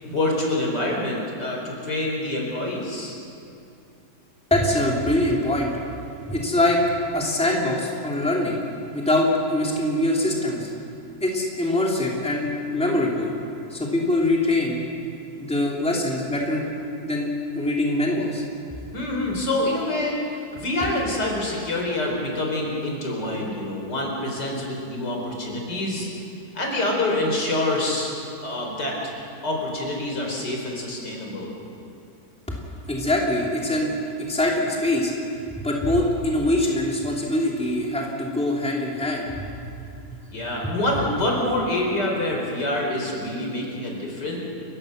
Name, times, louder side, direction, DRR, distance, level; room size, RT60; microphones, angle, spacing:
voice 1, 0.0-3.1 18.9-26.1 26.5-28.1 28.4-29.0 29.4-31.5 40.3-44.4, left 1 dB, 75° left, 0 dB, 4.8 m, -26 dB
voice 2, 4.5-5.8 6.3-6.8 7.1-8.6 8.9-10.7 11.2-13.3 13.7-14.8 15.3-16.7 17.0-18.4 32.9-33.9 34.3-35.1 35.6-39.4, left 1 dB, 5° left, -3 dB, 3.1 m, -23 dB
30.0 x 15.0 x 6.7 m, 2.7 s
omnidirectional pair, 1.8 m